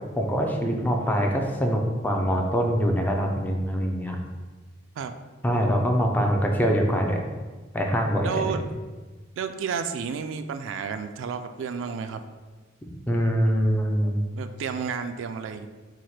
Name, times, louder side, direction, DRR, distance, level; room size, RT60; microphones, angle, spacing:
voice 1, 0.2-4.2 5.4-7.2 7.7-8.6 13.1-14.2, equal, 10° left, 1 dB, 0.4 m, -24 dB
voice 2, 8.2-8.6 9.4-12.2 14.3-15.7, right 6 dB, 75° right, 9 dB, 0.3 m, -31 dB
4.8 x 2.1 x 4.2 m, 1.3 s
head